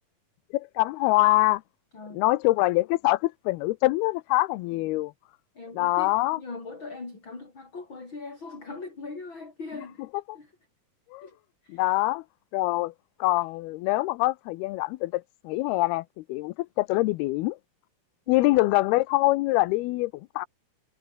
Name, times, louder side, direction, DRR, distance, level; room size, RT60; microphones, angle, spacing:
voice 1, 0.5-1.6 2.1-5.1 5.7-6.4 10.3-10.4 11.1-11.3 11.7-12.2 12.5-12.9 13.2-17.6 18.3-20.5, left 19 dB, 90° left, 2.6 m, -24 dB
voice 2, 5.5-10.0 10.3-10.5 11.2-11.4 11.6-11.8 18.3-18.6, left 3 dB, 30° left, 6.3 m, -40 dB
omnidirectional pair, 4.5 m